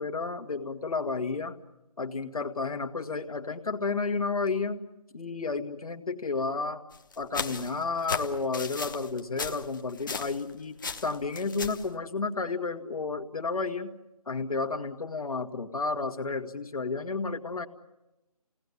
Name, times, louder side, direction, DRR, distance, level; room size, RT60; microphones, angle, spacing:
voice 1, 0.0-1.5 2.0-4.8 5.1-6.8 7.2-10.7 11.0-13.9 14.3-17.7, left 4 dB, 65° left, 5 dB, 2.1 m, -31 dB
sound 1, 6.9-10.5 10.8-11.9, left 4 dB, 30° left, 1.3 m, -36 dB
29.0 x 18.5 x 9.8 m, 1.0 s
figure-of-eight pair, 175°, 20 cm